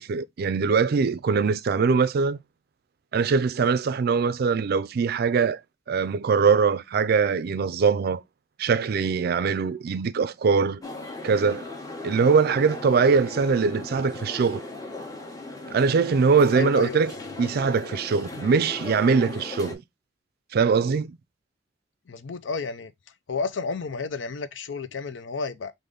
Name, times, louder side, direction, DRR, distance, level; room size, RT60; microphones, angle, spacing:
voice 1, 0.0-2.4 3.1-5.6 5.9-8.2 8.6-10.8 11.2-11.7 12.0-14.6 15.7-17.1 17.4-19.8 20.5-21.2, right 5 dB, 55° right, 0.4 m, -22 dB
sound 1, 10.8-19.7, left 2 dB, 20° left, 1.0 m, -38 dB
voice 2, 16.5-17.2 22.1-22.9 23.3-25.7, left 4 dB, 80° left, 0.5 m, -31 dB
5.0 x 2.6 x 3.8 m
head